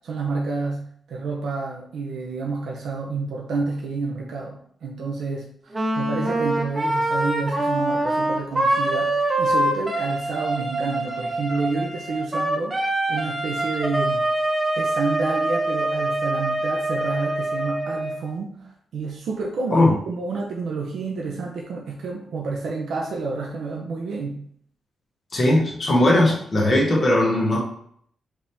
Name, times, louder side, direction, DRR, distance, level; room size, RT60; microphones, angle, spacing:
voice 1, 0.0-0.8 1.1-14.2 14.8-24.4, right 3 dB, 85° right, -1 dB, 0.7 m, -29 dB
Wind instrument woodwind instrument, 5.7-18.2, right 1 dB, 20° right, 0.7 m, -24 dB
voice 2, 25.3-27.6, left 1 dB, 35° left, -3 dB, 1.4 m, -18 dB
5.0 x 2.9 x 3.4 m, 0.64 s
wide cardioid pair, 135°, 0 cm